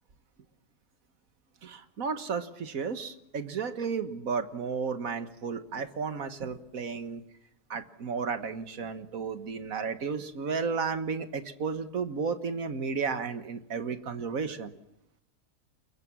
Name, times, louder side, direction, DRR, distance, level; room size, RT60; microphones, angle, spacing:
voice 1, 1.6-7.2 7.7-14.7, right 5 dB, 60° right, 9 dB, 1.8 m, -33 dB
29.5 x 22.5 x 6.2 m, 0.76 s
omnidirectional pair, 1.7 m